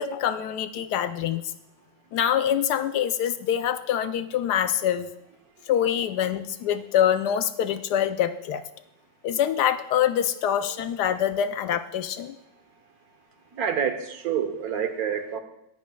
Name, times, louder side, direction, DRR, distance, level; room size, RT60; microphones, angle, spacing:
voice 1, 0.0-1.4 2.1-5.1 5.7-8.6 9.2-12.4, left 9 dB, 75° left, 11 dB, 1.0 m, -25 dB
voice 2, 13.5-15.4, right 8 dB, 60° right, 7 dB, 1.3 m, -28 dB
18.5 x 9.2 x 2.3 m, 0.84 s
omnidirectional pair, 2.0 m